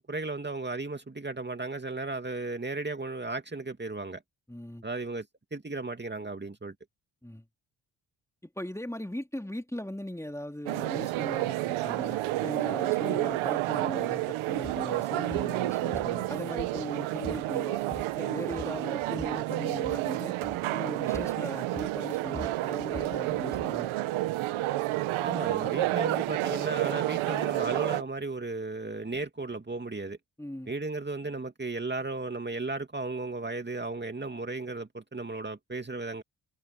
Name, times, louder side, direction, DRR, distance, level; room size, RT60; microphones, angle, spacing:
voice 1, 0.0-4.2 4.8-6.7 25.2-30.2 30.7-36.2, right 3 dB, 20° right, 2.6 m, -35 dB
voice 2, 4.5-4.8 7.2-7.4 8.4-17.8 18.1-20.3 20.7-23.9 30.4-30.7, left 1 dB, 5° left, 3.1 m, -39 dB
sound 1, 10.7-28.0, right 16 dB, 85° right, 1.3 m, -30 dB
sound 2, 14.6-14.8 15.3-15.5 15.9-16.9 17.2-17.5 17.8-18.2 18.5-19.4 19.8-20.1 20.4-20.7 21.1-21.4 21.8-23.8, left 3 dB, 25° left, 2.7 m, -43 dB
supercardioid pair, 50°, 47 cm